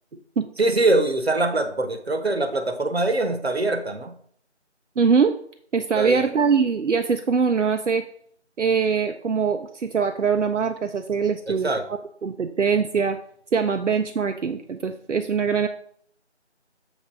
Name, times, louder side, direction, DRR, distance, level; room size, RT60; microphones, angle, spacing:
voice 1, 0.6-4.1 6.0-6.3 11.5-11.8, right 2 dB, 60° right, 8 dB, 0.9 m, -23 dB
voice 2, 5.0-5.3 5.7-8.0 8.6-11.7 12.2-13.2 13.5-15.7, right 6 dB, 80° right, 7 dB, 0.6 m, -22 dB
7.2 x 3.4 x 5.1 m, 0.63 s
figure-of-eight pair, 175°, 36 cm